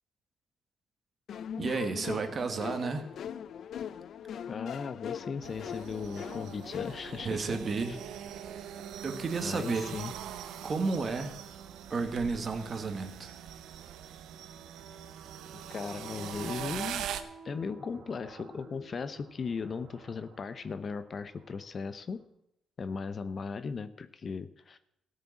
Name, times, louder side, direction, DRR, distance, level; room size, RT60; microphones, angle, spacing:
sound 1, 1.3-7.3, left 8 dB, 65° left, 0.5 m, -40 dB
voice 1, 1.6-3.1 7.2-8.0 9.0-9.9 10.6-11.3 11.9-13.3, right 4 dB, 40° right, 6 dB, 1.9 m, -32 dB
voice 2, 4.5-7.6 7.9-8.0 9.4-10.1 15.5-17.2 17.4-22.2 22.8-24.8, left 5 dB, 45° left, 13 dB, 0.8 m, -37 dB
sound 2, 5.4-17.2, right 9 dB, 85° right, 1.0 m, -42 dB
sound 3, 16.3-22.2, right 5 dB, 65° right, 2.5 m, -53 dB
14.5 x 6.8 x 8.8 m, 0.81 s
cardioid pair, 90°, 0 cm